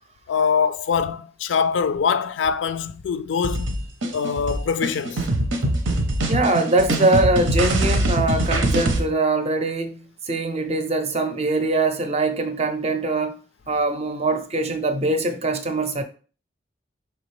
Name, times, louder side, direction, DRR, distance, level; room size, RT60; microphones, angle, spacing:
voice 1, 0.3-3.7 4.1-5.3, left 6 dB, 75° left, 0.4 m, -23 dB
sound 1, 3.4-9.0, right 1 dB, 90° right, 0.8 m, -23 dB
voice 2, 6.3-13.4 13.7-16.0, right 2 dB, 35° right, 0.5 m, -22 dB
4.9 x 3.3 x 3.2 m
head